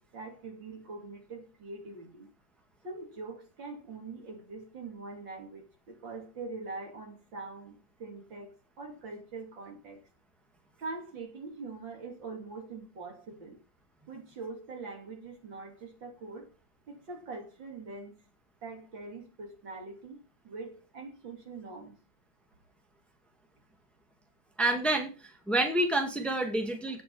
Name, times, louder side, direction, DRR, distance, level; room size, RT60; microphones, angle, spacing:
voice 1, 0.0-2.3 2.8-8.5 8.8-10.0 10.8-13.6 14.1-16.5 16.9-18.2 18.6-20.2 20.4-22.0, right 3 dB, 70° right, 3 dB, 3.6 m, -43 dB
voice 2, 24.6-25.1 25.5-27.0, right 2 dB, ahead, 3 dB, 2.0 m, -28 dB
16.5 x 5.8 x 5.6 m, 0.33 s
omnidirectional pair, 2.1 m